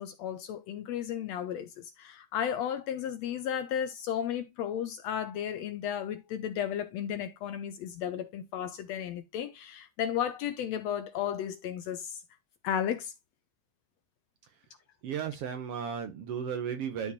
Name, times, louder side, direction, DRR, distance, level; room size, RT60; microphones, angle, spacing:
voice 1, 0.0-12.2 12.6-13.1, left 9 dB, 75° left, 1.6 m, -34 dB
voice 2, 15.0-17.1, right 7 dB, 65° right, 1.6 m, -34 dB
12.0 x 4.5 x 2.7 m
omnidirectional pair, 3.5 m